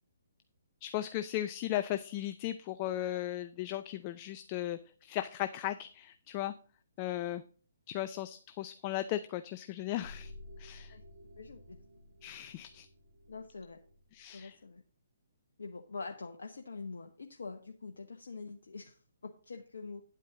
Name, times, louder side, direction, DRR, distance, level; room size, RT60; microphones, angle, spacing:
voice 1, 0.8-6.5 7.0-7.4 7.9-10.3 10.6-10.9 12.2-12.9 14.1-14.6, left 13 dB, 30° left, 11 dB, 0.5 m, -36 dB
sound 1, 10.0-14.3, left 2 dB, 60° right, 5.2 m, -53 dB
voice 2, 11.4-11.8 13.3-13.8 14.3-14.8 15.6-20.0, left 4 dB, 70° left, 3 dB, 1.0 m, -45 dB
9.9 x 8.3 x 3.9 m, 0.42 s
figure-of-eight pair, 130°, 0 cm